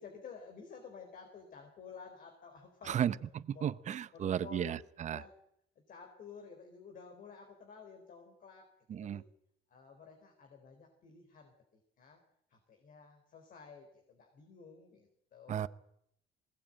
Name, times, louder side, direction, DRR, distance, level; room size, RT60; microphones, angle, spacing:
voice 1, 0.0-3.1 3.5-3.7 4.1-4.7 5.1-5.3 5.8-9.3 9.7-12.2 12.5-15.7, left 5 dB, 55° left, 3 dB, 4.0 m, -52 dB
voice 2, 3.5-5.2 8.9-9.2 15.5-15.7, right 9 dB, 45° right, 14 dB, 0.8 m, -34 dB
20.5 x 18.0 x 8.8 m, 0.73 s
cardioid pair, 110°, 17 cm